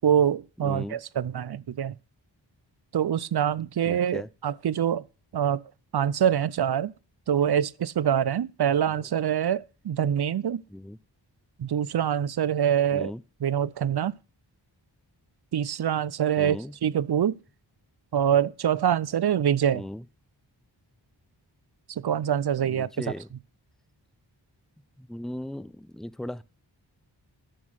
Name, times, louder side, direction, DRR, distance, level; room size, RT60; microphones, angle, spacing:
voice 1, 0.0-1.9 2.9-5.1 5.3-5.6 5.9-6.9 7.3-10.6 11.6-13.1 13.4-14.1 15.5-17.4 18.1-19.8 21.9-23.1, right 9 dB, 60° right, 0.5 m, -25 dB
voice 2, 0.6-1.0 3.8-4.3 10.7-11.0 12.9-13.2 16.4-16.7 19.7-20.0 22.6-23.3 25.0-26.4, left 1 dB, ahead, 0.4 m, -37 dB
11.0 x 6.1 x 6.2 m
wide cardioid pair, 60°, 46 cm